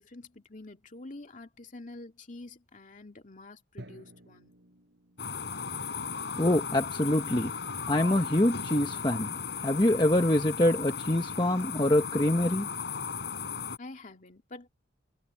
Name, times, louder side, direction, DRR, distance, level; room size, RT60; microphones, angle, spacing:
voice 1, 0.0-4.5 13.8-14.7, left 2 dB, 40° left, 2.5 m, -47 dB
Drum, 3.8-5.7, equal, 65° right, 6.9 m, -51 dB
sound 1, 5.2-13.8, left 5 dB, 65° left, 4.4 m, -36 dB
voice 2, 6.4-7.5 7.9-12.7, left 1 dB, 25° left, 1.1 m, -25 dB
head